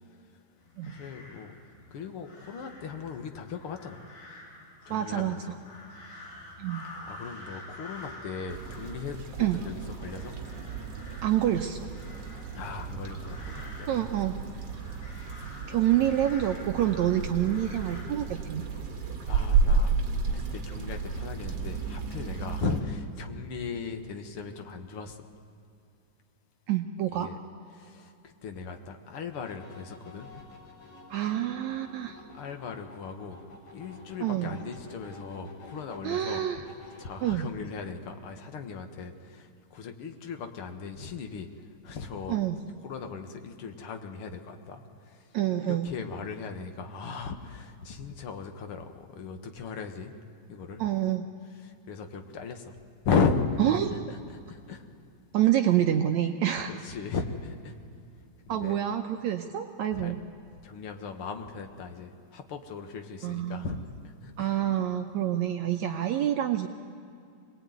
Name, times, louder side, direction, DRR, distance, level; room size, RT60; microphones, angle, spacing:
sound 1, 0.6-18.0, left 2 dB, 70° left, 7.1 m, -48 dB
voice 1, 0.8-1.6 1.9-4.0 4.9-5.6 7.1-9.2 9.5-10.4 12.5-13.9 19.0-20.0 20.3-25.3 27.1-27.4 27.7-30.4 32.3-33.4 33.7-36.5 37.0-41.5 41.8-42.4 42.8-45.3 45.6-50.1 50.5-50.8 51.6-52.7 53.1-53.5 54.1-54.8 56.7-57.7 58.5-58.8 59.9-60.1 60.6-63.8 64.0-64.5, left 5 dB, 50° left, 5 dB, 1.9 m, -36 dB
voice 2, 4.9-5.4 6.6-6.9 9.4-9.6 11.2-11.9 13.9-14.4 15.7-18.7 22.6-22.7 26.7-27.3 31.1-32.2 34.2-34.6 36.0-36.6 37.2-37.5 42.3-42.6 45.3-45.9 50.8-51.3 53.6-54.0 55.3-56.7 58.5-60.2 63.2-63.8 64.4-66.7, right 11 dB, 70° right, 5 dB, 1.8 m, -27 dB
sound 2, 8.5-22.8, right 4 dB, 45° right, 3.0 m, -32 dB
sound 3, 29.3-37.2, left 2 dB, 90° left, 5.7 m, -50 dB
24.5 x 20.0 x 9.4 m, 2.5 s
omnidirectional pair, 3.9 m